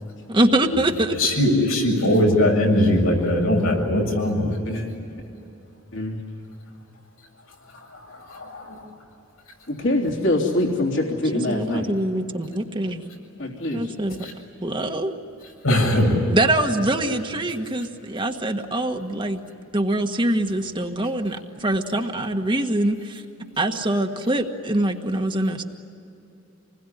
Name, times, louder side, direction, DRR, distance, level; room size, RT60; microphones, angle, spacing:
voice 1, 0.3-1.2 11.5-13.1 13.7-14.2 14.6-15.1 16.3-19.4 19.7-23.2 23.6-25.6, right 1 dB, 25° right, 4 dB, 1.5 m, -24 dB
voice 2, 1.2-4.6 8.3-8.8 14.2-14.3 15.6-16.2, left 1 dB, 90° left, 0 dB, 7.4 m, -20 dB
voice 3, 5.9-6.2 9.7-11.9 13.4-13.9, left 1 dB, 65° left, 0 dB, 3.5 m, -24 dB
27.5 x 21.0 x 10.0 m, 2.8 s
head